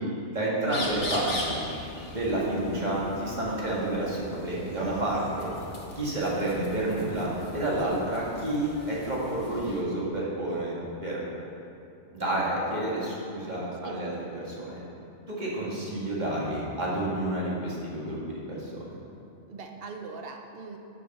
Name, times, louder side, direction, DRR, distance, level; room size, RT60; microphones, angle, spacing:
voice 1, 0.3-1.7 2.1-5.5 6.0-10.7 11.0-11.3 12.1-14.8 15.3-19.0, right 1 dB, 40° right, -6 dB, 2.0 m, -30 dB
sound 1, 0.7-9.8, left 2 dB, 80° left, 1.5 m, -40 dB
voice 2, 19.5-20.8, right 4 dB, 55° right, 4 dB, 1.0 m, -41 dB
7.1 x 6.9 x 6.5 m, 2.7 s
omnidirectional pair, 1.2 m